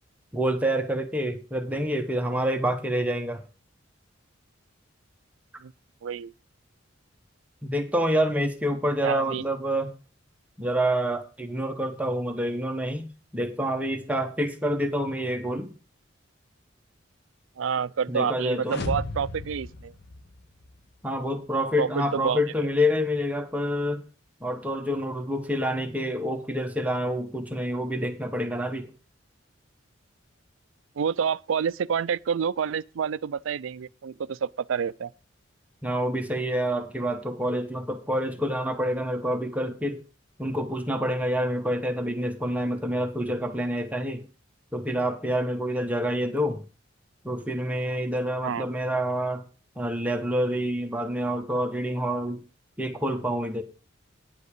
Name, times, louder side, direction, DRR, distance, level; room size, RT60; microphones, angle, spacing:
voice 1, 0.3-3.4 7.6-9.9 10.6-13.1 13.3-15.7 18.1-18.8 21.0-24.0 24.4-28.9 35.8-40.0 40.4-44.2 44.7-46.6 47.2-49.4 49.8-52.4 52.8-53.6, equal, 10° right, 1.0 m, -27 dB
voice 2, 6.0-6.3 9.0-9.4 17.6-19.9 21.8-22.4 31.0-35.1 48.4-48.7, right 7 dB, 80° right, 0.4 m, -28 dB
sound 1, 18.6-20.8, left 2 dB, 55° left, 1.0 m, -35 dB
9.8 x 5.4 x 6.6 m
head